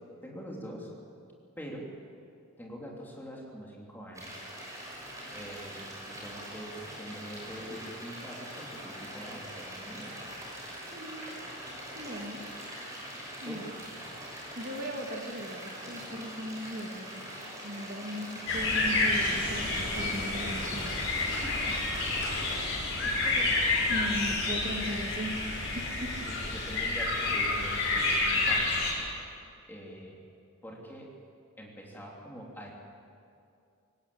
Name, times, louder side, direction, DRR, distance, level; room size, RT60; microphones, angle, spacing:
voice 1, 0.2-0.9 1.6-1.9 2.6-4.4 5.3-10.2 12.3-12.4 13.4-13.7 21.4-21.5 23.0-24.0 24.5-24.6 26.3-28.8 29.7-30.2 30.6-31.1 31.6-32.7, equal, 10° left, -2 dB, 3.2 m, -44 dB
sound 1, 4.1-22.7, right 1 dB, 15° right, 6.2 m, -43 dB
voice 2, 10.9-11.2 12.0-12.4 13.4-13.7 14.6-17.1 17.6-21.0 21.7-21.8 23.2-23.3 23.9-26.3, equal, 40° right, 1 dB, 2.4 m, -38 dB
sound 2, 18.5-28.9, left 2 dB, 55° left, 6.8 m, -29 dB
24.0 x 19.0 x 8.7 m, 2.5 s
head